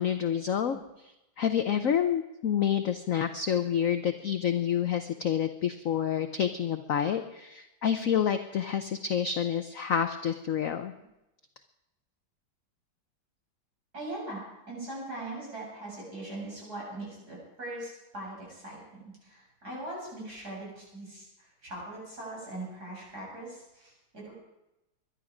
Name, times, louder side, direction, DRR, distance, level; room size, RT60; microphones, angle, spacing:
voice 1, 0.0-10.9, left 8 dB, 70° left, 8 dB, 0.7 m, -28 dB
voice 2, 13.9-24.3, right 1 dB, 50° right, -4 dB, 8.8 m, -41 dB
22.0 x 11.5 x 5.0 m, 0.93 s
omnidirectional pair, 2.2 m